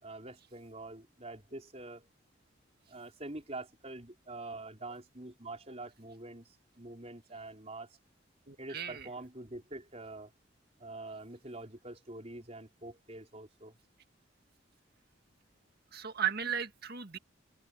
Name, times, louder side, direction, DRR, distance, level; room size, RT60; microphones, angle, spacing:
voice 1, 0.0-2.1 2.9-7.9 8.6-10.3 10.8-13.7, right 2 dB, 30° right, 5.0 m, -45 dB
voice 2, 8.5-9.0 15.9-17.2, right 8 dB, 50° right, 2.0 m, -35 dB
head